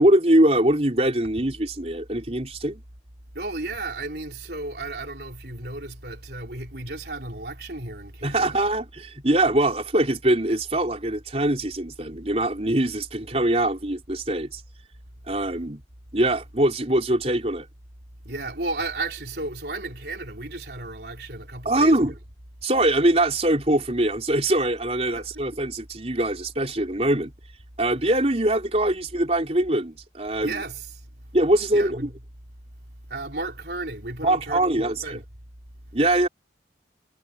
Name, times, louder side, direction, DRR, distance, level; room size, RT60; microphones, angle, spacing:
voice 1, 0.0-2.8 8.2-14.6 15.3-15.8 16.1-17.7 21.6-22.1 22.6-27.3 27.8-30.6 31.3-32.1 34.2-35.2 35.9-36.3, right 1 dB, 35° right, 4.1 m, -22 dB
voice 2, 3.3-8.7 18.2-22.1 25.1-25.4 30.4-31.1 31.7-32.1 33.1-35.2, right 2 dB, 65° right, 3.8 m, -33 dB
head